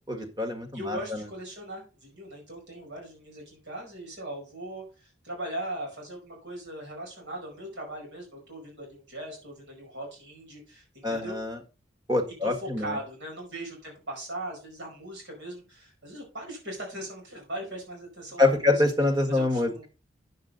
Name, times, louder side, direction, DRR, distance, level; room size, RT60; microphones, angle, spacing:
voice 1, 0.1-1.0 11.0-11.6 12.1-12.9 18.4-19.7, left 2 dB, 20° right, 5 dB, 1.7 m, -25 dB
voice 2, 0.7-11.4 12.4-18.8 19.3-19.8, right 1 dB, 70° right, -1 dB, 5.1 m, -39 dB
9.5 x 7.3 x 3.9 m, 0.32 s
head